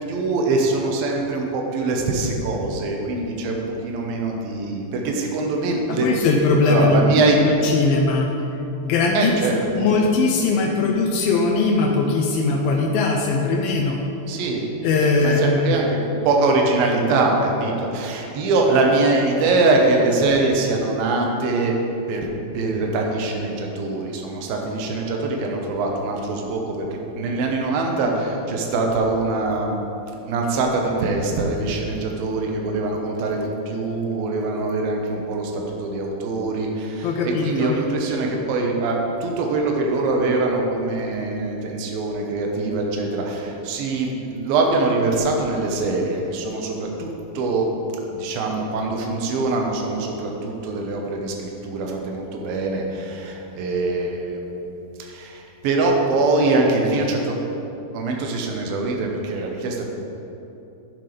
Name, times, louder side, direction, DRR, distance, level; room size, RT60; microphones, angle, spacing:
voice 1, 0.1-6.1 6.6-7.4 9.1-9.9 14.3-14.7 15.2-21.7 22.1-22.3 22.5-26.9 27.2-29.8 30.2-47.1 47.3-47.7 48.1-54.4 55.0-57.4 57.9-59.9, right 3 dB, 70° right, 0 dB, 2.6 m, -23 dB
voice 2, 6.0-8.3 8.8-9.4 9.7-14.0 14.8-15.7 37.0-37.8, left 3 dB, 80° left, 1 dB, 2.1 m, -20 dB
12.5 x 11.0 x 3.4 m, 2.9 s
omnidirectional pair, 5.0 m